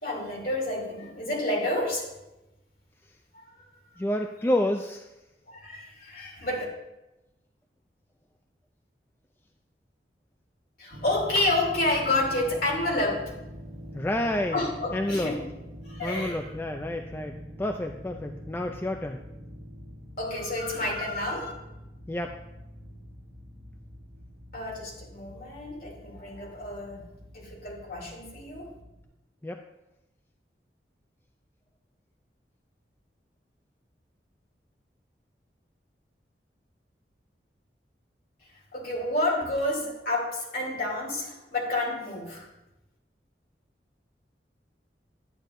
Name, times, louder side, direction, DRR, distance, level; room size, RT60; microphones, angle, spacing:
voice 1, 0.0-2.1 3.3-3.6 5.5-6.6 10.8-13.2 14.5-15.4 15.8-16.4 20.2-21.5 24.5-27.0 27.3-28.7 38.7-42.5, left 2 dB, 55° left, -3 dB, 2.9 m, -29 dB
voice 2, 4.0-5.1 13.9-14.6 14.9-15.3 16.0-19.2 22.1-22.4 29.4-29.6, left 1 dB, 10° left, 4 dB, 0.3 m, -29 dB
sound 1, 10.9-29.0, equal, 75° right, 1.6 m, -45 dB
11.0 x 9.0 x 2.6 m, 0.95 s
head